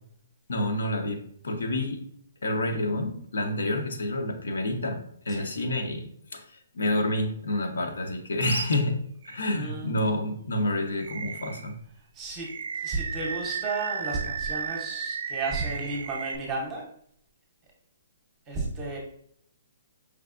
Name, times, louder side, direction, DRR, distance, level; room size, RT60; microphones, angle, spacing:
voice 1, 0.5-2.0 2.4-6.4 6.7-9.0 9.3-11.7, left 1 dB, 90° left, 4 dB, 0.8 m, -28 dB
Animal, 8.4-8.8 9.2-9.4 11.0-11.7 12.4-16.4, right 6 dB, 50° right, 0.3 m, -34 dB
voice 2, 9.5-9.9 12.1-12.5 12.8-16.8 18.5-19.0, right 3 dB, 15° right, -1 dB, 0.7 m, -33 dB
4.8 x 3.3 x 2.4 m, 0.67 s
hypercardioid pair, 180°, 0 cm